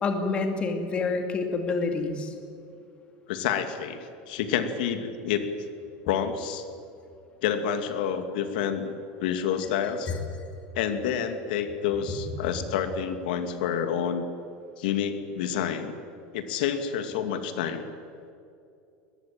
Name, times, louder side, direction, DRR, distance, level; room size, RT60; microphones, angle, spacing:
voice 1, 0.0-2.3 10.1-10.2 12.2-12.3, left 4 dB, 25° left, 5 dB, 2.5 m, -28 dB
voice 2, 3.3-5.5 6.0-6.6 7.4-8.9 9.2-10.1 10.7-14.2 14.8-15.9 16.3-17.8, left 8 dB, 80° left, 8 dB, 2.5 m, -28 dB
23.0 x 21.5 x 9.0 m, 2.6 s
supercardioid pair, 165°, 5 cm